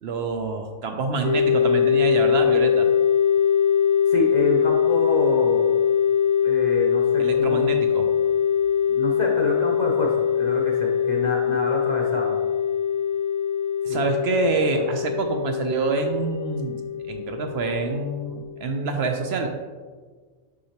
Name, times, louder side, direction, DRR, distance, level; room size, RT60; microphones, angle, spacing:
voice 1, 0.0-2.9 7.2-8.1 13.8-16.8 17.1-19.5, right 3 dB, 60° right, 5 dB, 0.7 m, -26 dB
sound 1, 1.2-18.6, left 8 dB, 70° left, 0.9 m, -22 dB
voice 2, 4.1-5.7 6.4-7.7 8.9-12.4 13.9-14.0 14.7-14.9, left 1 dB, 45° left, -1 dB, 0.6 m, -28 dB
6.3 x 5.5 x 2.9 m, 1.5 s
omnidirectional pair, 1.5 m